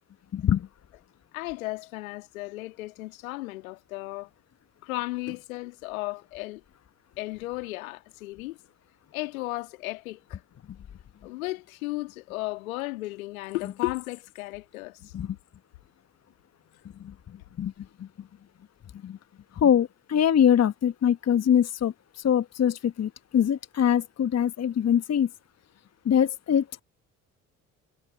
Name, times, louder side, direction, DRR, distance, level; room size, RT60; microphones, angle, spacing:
voice 1, 0.3-0.7 15.1-15.3 17.6-17.7 19.0-19.2 19.6-21.9 22.2-25.3 26.0-26.8, left 9 dB, 40° left, 1.3 m, -23 dB
voice 2, 1.3-4.3 4.8-6.6 7.2-8.6 9.1-10.4 11.2-15.1, left 20 dB, 75° left, 2.2 m, -34 dB
figure-of-eight pair, 50°, 42 cm